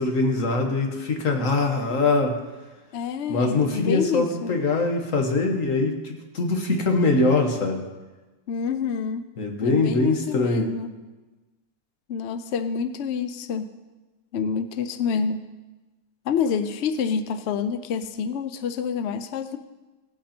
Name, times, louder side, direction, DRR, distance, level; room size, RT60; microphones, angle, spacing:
voice 1, 0.0-2.4 3.3-7.9 9.4-10.7, left 3 dB, 50° left, 3 dB, 1.7 m, -23 dB
voice 2, 2.9-4.6 8.5-9.2 9.6-10.9 12.1-13.7 14.3-15.4 16.3-19.6, left 6 dB, 85° left, 11 dB, 0.6 m, -27 dB
17.0 x 8.3 x 4.4 m, 1.2 s
omnidirectional pair, 1.9 m